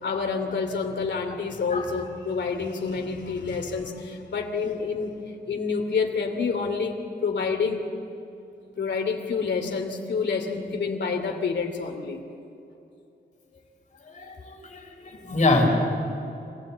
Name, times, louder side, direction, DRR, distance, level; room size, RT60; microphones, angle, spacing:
voice 1, 0.0-7.8 8.8-12.2, left 5 dB, 75° left, 4 dB, 2.7 m, -28 dB
voice 2, 14.0-15.7, left 2 dB, 45° left, 1 dB, 4.4 m, -25 dB
25.5 x 17.0 x 8.4 m, 2.8 s
wide cardioid pair, 165°, 18 cm